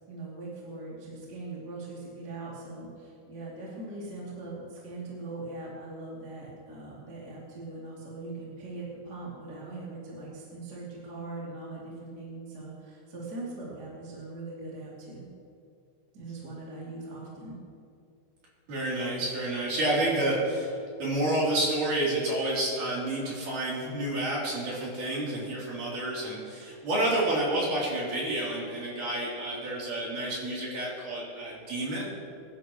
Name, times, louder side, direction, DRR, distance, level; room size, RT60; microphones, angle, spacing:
voice 1, 0.1-15.3 16.1-17.5, right 2 dB, 25° right, -6 dB, 2.8 m, -41 dB
voice 2, 18.7-20.7 21.0-32.0, right 1 dB, 50° right, -6 dB, 4.7 m, -29 dB
23.0 x 11.5 x 3.1 m, 2.5 s
omnidirectional pair, 4.8 m